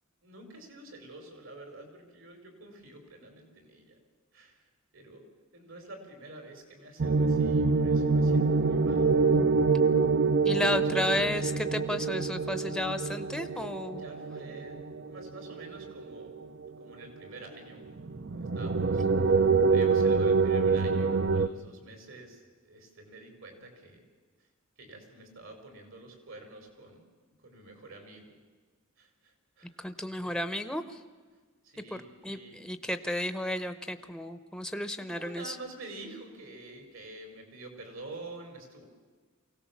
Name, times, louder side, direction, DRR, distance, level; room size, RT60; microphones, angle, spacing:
voice 1, 0.2-4.0 4.3-4.7 4.9-5.2 5.5-9.1 10.9-11.1 14.0-16.3 16.8-17.8 18.3-24.0 24.8-27.0 27.4-28.4 29.0-29.8 30.2-30.4 31.6-32.6 35.0-38.8, right 2 dB, 75° right, 5 dB, 5.0 m, -48 dB
sound 1, 7.0-16.7 17.2-17.3 17.9-21.5, right 4 dB, 55° right, 0.6 m, -26 dB
voice 2, 10.4-14.0 29.8-31.0 31.9-32.0 32.2-35.6, left 1 dB, 5° left, 10 dB, 0.8 m, -33 dB
24.0 x 17.5 x 7.3 m, 1.4 s
head